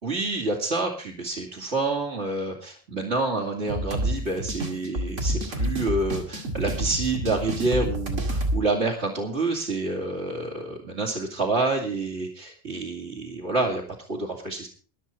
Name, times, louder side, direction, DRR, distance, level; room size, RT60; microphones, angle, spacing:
voice 1, 0.0-13.8 14.1-14.7, right 3 dB, 65° right, -1 dB, 2.9 m, -28 dB
sound 1, 3.7-8.6, right 1 dB, 85° right, 2.6 m, -28 dB
22.5 x 7.6 x 4.4 m, 0.39 s
omnidirectional pair, 1.2 m